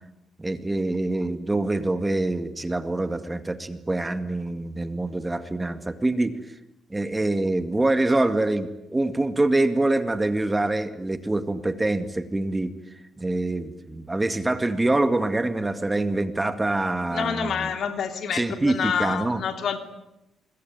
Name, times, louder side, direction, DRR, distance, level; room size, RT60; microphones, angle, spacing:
voice 1, 0.4-6.4 6.9-12.7 13.2-17.7 18.3-19.4, right 2 dB, 15° right, 10 dB, 2.0 m, -25 dB
voice 2, 17.1-19.8, left 7 dB, 65° left, 7 dB, 3.3 m, -28 dB
25.5 x 22.5 x 9.5 m, 0.88 s
cardioid pair, 90°, 0 cm